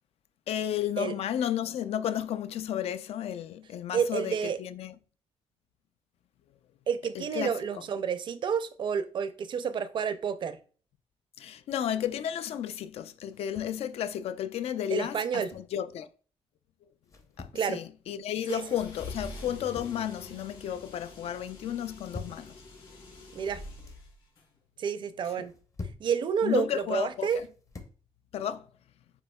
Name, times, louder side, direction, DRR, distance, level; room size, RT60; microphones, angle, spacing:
voice 1, 0.5-4.9 7.1-7.5 11.4-16.1 17.4-22.5 26.4-27.3 28.3-28.7, left 10 dB, 70° left, 0.4 m, -33 dB
voice 2, 3.9-4.6 6.9-10.6 14.9-15.5 17.5-17.8 18.5-18.7 23.3-23.6 24.8-25.5 26.0-27.4, right 7 dB, 45° right, 0.4 m, -30 dB
sound 1, 13.3-13.8 15.1-15.8 17.0-17.6 19.3-20.1 20.5-20.9 21.8-22.5 23.5-24.0 25.3-26.1 27.2-28.0, left 3 dB, 30° left, 0.7 m, -45 dB
sound 2, 18.5-24.4, left 2 dB, 50° left, 2.4 m, -46 dB
8.2 x 2.8 x 2.2 m
cardioid pair, 145°, 11 cm